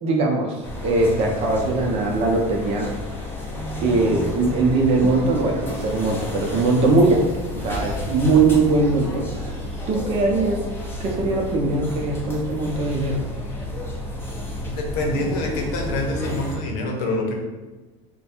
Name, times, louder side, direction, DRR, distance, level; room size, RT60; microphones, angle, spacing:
voice 1, 0.0-0.6 0.8-2.9 3.8-7.3 7.5-9.6 9.9-10.6 11.0-13.2, right 3 dB, 40° right, 1 dB, 0.6 m, -21 dB
sound 1, 0.6-16.6, left 1 dB, 15° left, 0.7 m, -31 dB
voice 2, 14.7-17.3, left 2 dB, 60° left, 0 dB, 0.8 m, -26 dB
3.2 x 2.2 x 4.3 m, 1.2 s
supercardioid pair, 145°, 16 cm